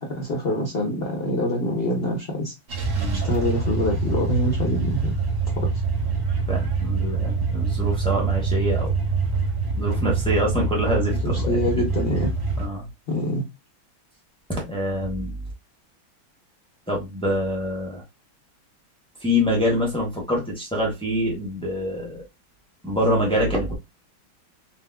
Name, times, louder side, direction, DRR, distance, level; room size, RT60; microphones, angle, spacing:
voice 1, 0.0-2.5 3.1-5.2 5.6-5.7 11.2-12.3 13.1-13.5, left 1 dB, 75° left, 0.5 m, -25 dB
sound 1, 2.7-12.7, right 4 dB, 70° right, 0.5 m, -25 dB
voice 2, 6.5-8.9 9.7-11.6 12.6-12.8 14.5-15.3 16.9-18.0 19.2-22.2 22.8-23.8, equal, 5° left, 0.4 m, -25 dB
3.9 x 2.6 x 2.3 m
omnidirectional pair, 2.2 m